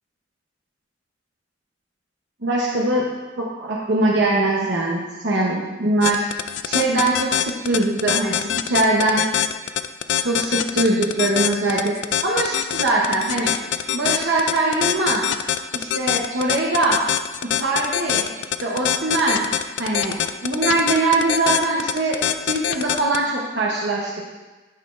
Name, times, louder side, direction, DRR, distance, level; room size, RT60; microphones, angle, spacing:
voice 1, 2.4-3.1 3.4-6.2 6.6-9.3 10.2-11.9 12.2-13.5 13.9-15.2 15.7-17.0 17.4-18.3 18.6-19.4 19.8-24.3, right 2 dB, 70° right, -3 dB, 0.9 m, -22 dB
sound 1, 6.0-23.2, left 11 dB, 80° left, 0.3 m, -23 dB
9.5 x 5.9 x 2.5 m, 1.2 s
head